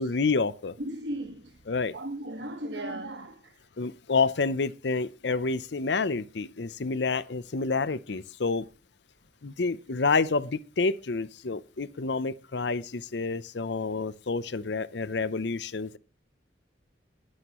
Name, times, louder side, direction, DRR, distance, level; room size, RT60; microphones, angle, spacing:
voice 1, 0.0-0.8 1.7-1.9 3.8-8.7 9.4-16.0, left 4 dB, 70° left, 0.7 m, -28 dB
voice 2, 0.8-1.6 1.9-3.7, right 1 dB, 70° right, 1.5 m, -37 dB
21.5 x 9.8 x 3.0 m
head